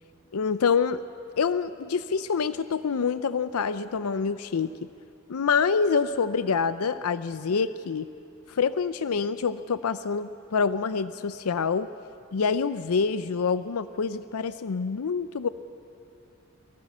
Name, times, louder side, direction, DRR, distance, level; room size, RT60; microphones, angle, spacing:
voice 1, 0.3-1.0 1.4-4.7 5.3-8.1 8.5-11.9 12.3-15.5, left 5 dB, 85° left, 13 dB, 0.5 m, -26 dB
27.5 x 20.5 x 6.1 m, 2.7 s
head